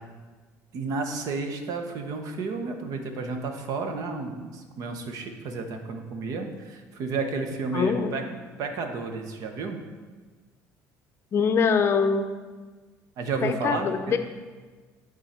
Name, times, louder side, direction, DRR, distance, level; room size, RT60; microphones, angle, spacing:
voice 1, 0.7-8.2 8.6-9.8 13.2-13.9, right 4 dB, 60° right, 5 dB, 0.9 m, -31 dB
voice 2, 7.7-8.2 11.3-12.3 13.4-14.2, left 6 dB, 40° left, 8 dB, 0.6 m, -23 dB
10.5 x 3.9 x 4.3 m, 1.4 s
cardioid pair, 115°, 7 cm